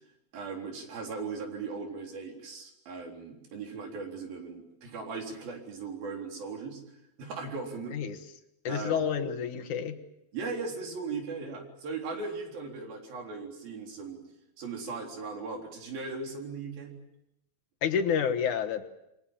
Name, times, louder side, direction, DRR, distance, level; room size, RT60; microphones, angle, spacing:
voice 1, 0.3-6.8 7.2-8.0 8.7-9.1 10.3-14.2 14.6-16.9, right 4 dB, 85° right, 2 dB, 5.7 m, -38 dB
voice 2, 8.6-10.0 17.8-18.8, left 7 dB, 65° left, 5 dB, 2.6 m, -29 dB
27.5 x 23.5 x 7.4 m, 0.86 s
omnidirectional pair, 4.1 m